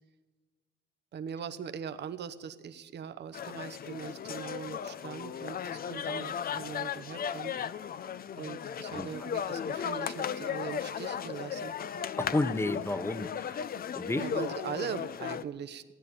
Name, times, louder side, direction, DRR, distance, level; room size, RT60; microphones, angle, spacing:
voice 1, 1.1-7.5 8.4-11.7 14.1-16.0, right 8 dB, 60° right, 11 dB, 1.0 m, -41 dB
sound 1, 3.3-15.4, left 8 dB, 50° left, 0.6 m, -36 dB
voice 2, 12.2-13.6 13.9-14.5, left 2 dB, 10° left, 14 dB, 0.9 m, -32 dB
16.0 x 9.7 x 8.4 m, 1.3 s
cardioid pair, 90°, 20 cm